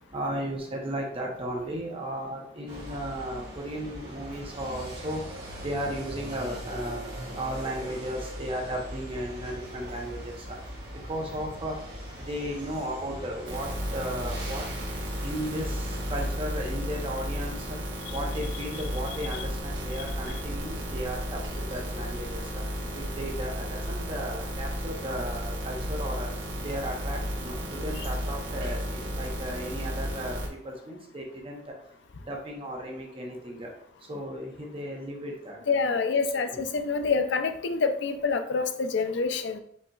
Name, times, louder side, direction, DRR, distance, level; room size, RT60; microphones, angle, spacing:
voice 1, 0.1-5.2 5.6-7.1 7.4-10.3 11.1-11.8 12.3-14.7 15.2-17.8 18.1-22.4 22.9-26.3 26.6-30.4 30.6-31.6 32.3-33.7 34.1-35.6 36.5-36.6, equal, 30° right, 0 dB, 0.7 m, -35 dB
sound 1, 2.7-16.3, equal, 60° right, 1.4 m, -41 dB
sound 2, 13.5-30.5, equal, 85° right, 1.1 m, -33 dB
voice 2, 35.7-39.6, left 4 dB, 70° left, 8 dB, 0.5 m, -27 dB
5.3 x 4.2 x 2.3 m, 0.67 s
head